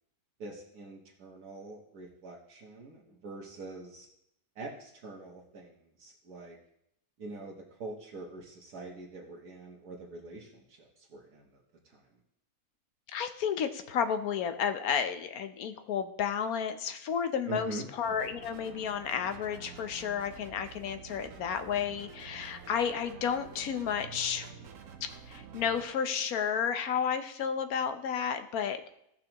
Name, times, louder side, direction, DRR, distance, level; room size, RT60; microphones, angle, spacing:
voice 1, 0.4-4.1 4.5-6.6 7.2-11.6 11.9-12.0 17.4-17.9, right 3 dB, 80° right, -2 dB, 1.8 m, -44 dB
voice 2, 13.1-24.5 25.3-28.8, left 7 dB, 70° left, 8 dB, 1.2 m, -32 dB
sound 1, 18.0-25.8, right 6 dB, 60° right, 1.2 m, -49 dB
17.0 x 5.8 x 2.9 m, 0.78 s
omnidirectional pair, 1.6 m